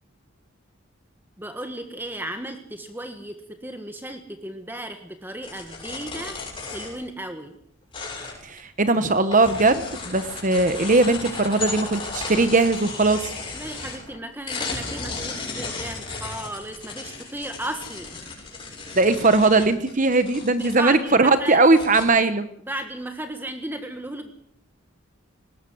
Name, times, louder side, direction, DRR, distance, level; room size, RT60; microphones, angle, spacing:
voice 1, 1.4-3.4 3.6-6.4 6.7-7.5 13.5-18.2 20.6-21.6 22.6-24.3, right 1 dB, 10° right, 6 dB, 1.5 m, -35 dB
sound 1, 5.4-7.1 7.9-8.6 9.0-14.2 14.5-21.0 21.4-21.5 21.7-22.1, left 3 dB, 25° left, 6.8 m, -35 dB
voice 2, 8.4-13.3 19.0-22.5, right 3 dB, 35° right, 11 dB, 1.0 m, -19 dB
20.0 x 18.5 x 7.8 m, 0.66 s
head